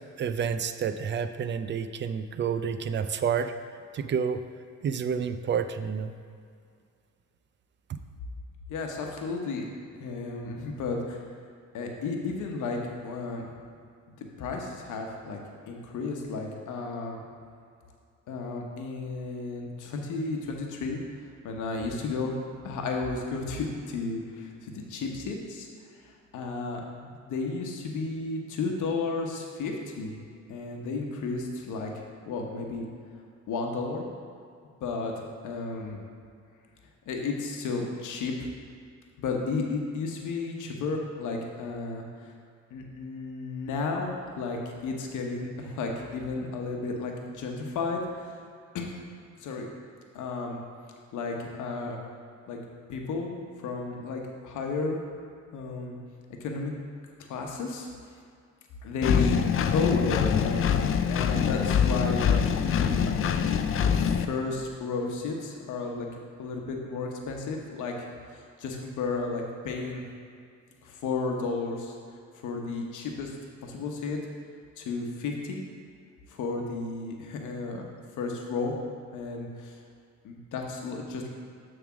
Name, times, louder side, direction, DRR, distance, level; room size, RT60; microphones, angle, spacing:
voice 1, 0.2-3.5 3.9-4.4 4.8-6.1, right 7 dB, 40° right, 10 dB, 0.4 m, -29 dB
voice 2, 8.7-9.6 9.9-11.2 11.7-12.8 13.0-13.5 14.2-15.4 15.7-17.2 18.3-21.0 21.4-22.3 22.6-25.7 26.0-30.1 30.5-32.9 33.5-34.1 34.8-36.0 37.1-38.3 39.2-42.3 42.7-48.4 48.7-48.8 49.4-49.7 50.1-50.6 51.1-52.0 52.5-52.6 52.9-55.0 55.5-56.0 56.4-56.7 57.2-57.9 58.8-59.4 59.6-63.1 63.8-66.1 66.4-67.9 68.3-70.0 70.8-71.9 72.4-73.3 73.6-74.2 74.8-75.6 76.3-77.8 78.2-78.7 79.1-79.8 80.2-81.3, left 3 dB, 80° left, 1 dB, 1.0 m, -33 dB
Engine, 59.0-64.2, left 7 dB, 45° left, 0.4 m, -24 dB
6.9 x 3.6 x 6.1 m, 2.3 s
cardioid pair, 90°, 30 cm